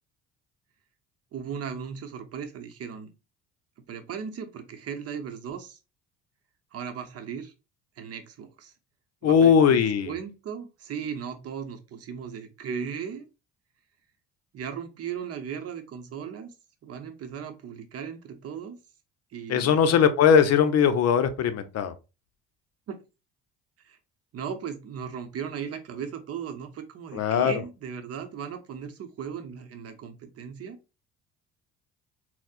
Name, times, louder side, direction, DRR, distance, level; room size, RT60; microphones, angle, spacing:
voice 1, 1.3-3.1 3.9-5.8 6.7-7.5 8.0-8.7 9.2-13.3 14.5-16.5 16.8-18.8 19.3-19.9 22.9-23.0 23.8-24.0 24.3-30.8, right 7 dB, 50° right, 0.7 m, -37 dB
voice 2, 9.2-10.1 19.5-21.9 27.1-27.5, left 7 dB, 50° left, 0.6 m, -20 dB
4.1 x 2.1 x 2.4 m
supercardioid pair, 75°, 32 cm